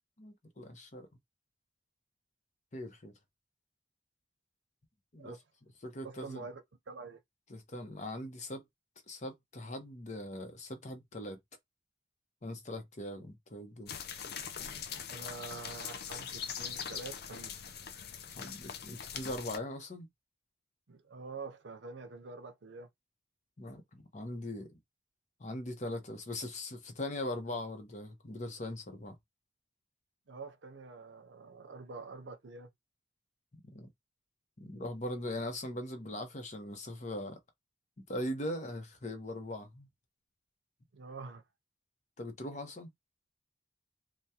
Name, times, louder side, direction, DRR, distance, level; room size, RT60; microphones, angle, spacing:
voice 1, 0.2-1.1 2.7-3.1 5.1-5.4 5.8-6.4 7.5-8.6 9.1-11.4 12.4-13.9 18.4-20.1 23.6-24.8 25.4-29.2 33.7-33.9 34.6-37.4 38.1-39.9 42.2-42.9, left 1 dB, 40° left, 0.9 m, -40 dB
voice 2, 6.0-7.2 15.1-17.5 20.9-22.9 30.3-32.7 40.9-41.4, right 4 dB, 80° right, 0.7 m, -46 dB
sound 1, 13.9-19.6, left 7 dB, 60° left, 0.5 m, -42 dB
3.5 x 2.3 x 2.8 m
head